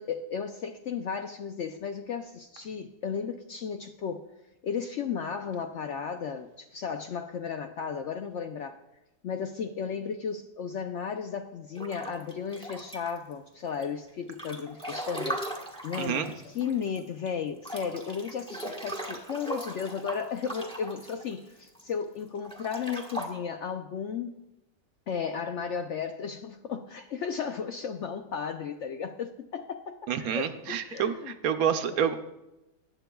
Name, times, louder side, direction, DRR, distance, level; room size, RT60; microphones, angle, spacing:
voice 1, 0.0-4.3 4.6-8.8 9.2-15.4 15.8-24.4 25.1-31.3 31.9-32.0, left 6 dB, 70° left, 0.7 m, -34 dB
Breathing / Bathtub (filling or washing) / Splash splatter, 11.8-13.3 13.8-17.0 17.3-17.4 17.6-21.8 22.4-23.3, right 1 dB, 5° left, 1.0 m, -38 dB
voice 2, 16.0-16.3 30.1-32.2, right 8 dB, 70° right, 1.1 m, -28 dB
19.5 x 9.0 x 2.3 m
omnidirectional pair, 1.7 m